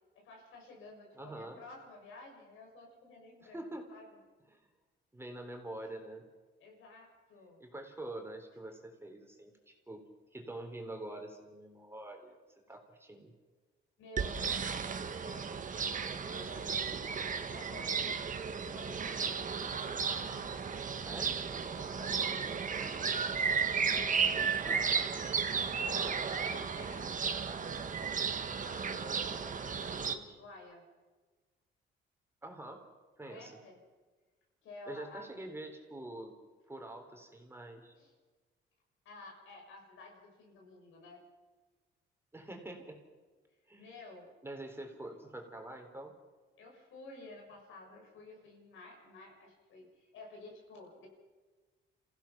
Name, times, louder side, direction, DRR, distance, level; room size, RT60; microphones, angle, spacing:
voice 1, 0.1-4.1 6.6-7.6 14.0-15.6 16.0-18.3 18.6-20.7 21.8-23.0 23.8-24.1 24.6-25.1 25.4-27.2 27.5-27.7 28.6-30.8 33.3-33.8 34.6-35.3 38.0-38.1 39.0-41.2 43.8-44.3 46.6-51.1, left 2 dB, 85° left, 1 dB, 6.6 m, -52 dB
voice 2, 1.2-1.6 3.4-3.9 4.5-4.7 5.1-6.2 7.6-10.0 10.3-12.4 12.7-13.3 21.0-21.4 24.3-24.8 32.4-32.8 33.2-33.6 34.9-36.3 36.7-37.9 42.3-43.0 43.7-44.0 44.4-46.1, right 1 dB, 10° right, 3 dB, 3.8 m, -45 dB
sound 1, 14.2-30.2, right 6 dB, 40° right, 1.5 m, -34 dB
28.0 x 16.0 x 6.0 m, 1.3 s
cardioid pair, 90°, 20 cm